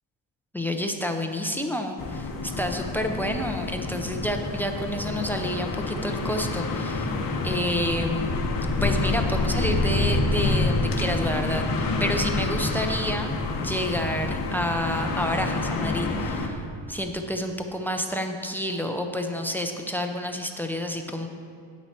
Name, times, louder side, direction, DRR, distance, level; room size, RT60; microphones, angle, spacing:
voice 1, 0.5-7.1 7.4-8.3 8.8-13.3 13.6-16.6 16.9-21.3, equal, 5° left, 5 dB, 0.3 m, -29 dB
sound 1, 2.0-16.5, left 3 dB, 45° left, 1.0 m, -27 dB
9.3 x 9.0 x 4.3 m, 2.4 s
cardioid pair, 155°, 49 cm